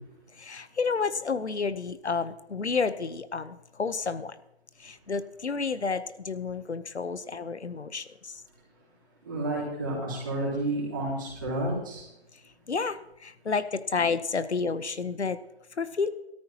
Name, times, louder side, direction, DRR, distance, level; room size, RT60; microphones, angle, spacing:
voice 1, 0.4-4.4 4.8-8.3 12.7-15.4 15.8-16.1, left 5 dB, 80° left, 13 dB, 1.0 m, -30 dB
voice 2, 9.2-12.1, right 1 dB, 20° right, -5 dB, 3.9 m, -30 dB
18.0 x 13.5 x 2.9 m, 0.85 s
figure-of-eight pair, 170°, 33 cm